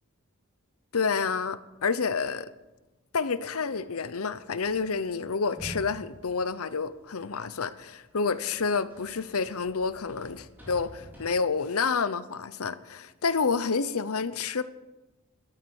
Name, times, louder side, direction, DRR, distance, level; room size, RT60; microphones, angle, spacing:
voice 1, 0.9-2.5 3.1-14.6, left 5 dB, 85° left, 0.8 m, -29 dB
sound 1, 4.6-7.6 8.0-11.4, right 1 dB, 10° right, 4.4 m, -48 dB
13.5 x 12.5 x 7.0 m
head